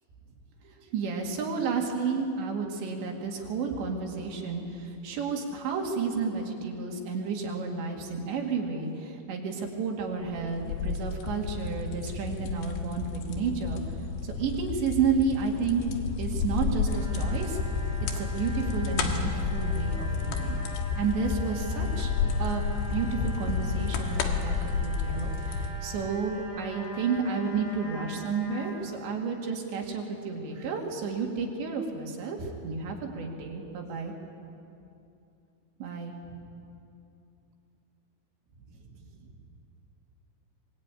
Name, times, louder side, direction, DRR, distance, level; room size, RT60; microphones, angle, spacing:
voice 1, 0.6-13.8 14.2-15.9 16.2-17.6 18.1-20.6 21.0-22.1 22.4-22.6 22.9-34.1 35.8-36.2, right 5 dB, 70° right, 1 dB, 4.6 m, -31 dB
sound 1, 10.3-25.7, left 5 dB, 85° left, 4.1 m, -31 dB
sound 2, 16.9-28.7, left 1 dB, 60° left, 7.1 m, -43 dB
24.5 x 22.5 x 9.2 m, 2.7 s
omnidirectional pair, 5.4 m